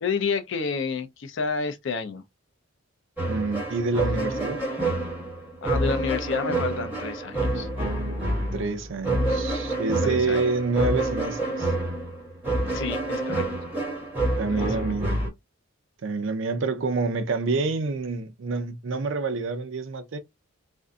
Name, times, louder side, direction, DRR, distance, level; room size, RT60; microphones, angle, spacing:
voice 1, 0.0-2.2 5.6-7.7 10.0-10.4 12.7-13.5 14.5-14.9, left 5 dB, 60° left, 0.4 m, -30 dB
sound 1, 3.2-15.3, right 1 dB, 10° right, 1.2 m, -28 dB
voice 2, 3.3-4.6 8.5-11.7 14.4-15.1 16.0-20.2, right 3 dB, 60° right, 0.4 m, -27 dB
2.5 x 2.5 x 2.2 m
head